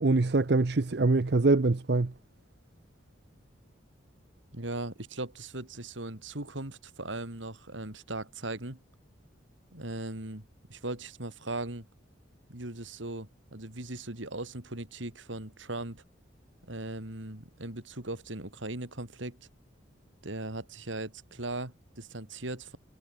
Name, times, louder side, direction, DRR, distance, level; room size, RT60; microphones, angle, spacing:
voice 1, 0.0-2.1, right 3 dB, 55° right, 0.7 m, -24 dB
voice 2, 4.5-8.8 9.7-11.9 12.5-16.0 16.7-19.4 20.2-22.8, right 2 dB, 75° right, 3.3 m, -38 dB
head